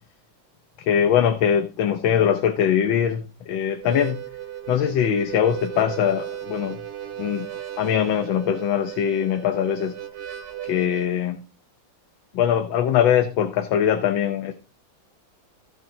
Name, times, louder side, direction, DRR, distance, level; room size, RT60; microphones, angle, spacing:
voice 1, 0.9-4.2 4.7-6.8 7.2-7.5 7.8-10.0 10.6-11.4 12.3-14.5, left 9 dB, 90° left, 1.6 m, -22 dB
Harmonica, 3.7-11.1, right 12 dB, 65° right, 1.3 m, -35 dB
16.0 x 6.1 x 2.7 m
omnidirectional pair, 2.1 m